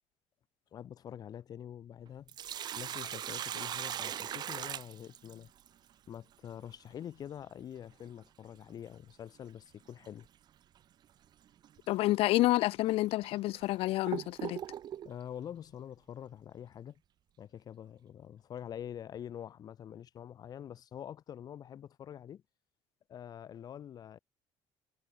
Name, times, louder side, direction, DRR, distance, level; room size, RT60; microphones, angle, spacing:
voice 1, 0.7-2.3 2.6-5.5 6.1-10.3 15.0-17.0 17.4-22.4 23.1-24.2, left 9 dB, 40° left, 4.7 m, -46 dB
Sink (filling or washing), 2.1-5.7 8.1-8.2 10.0-10.3 10.8-10.9 11.6-11.8 12.5-12.6 13.2-15.1, right 10 dB, 45° right, 2.1 m, -39 dB
voice 2, 11.9-14.6, left 17 dB, 70° left, 0.8 m, -29 dB
cardioid pair, 170°, 10 cm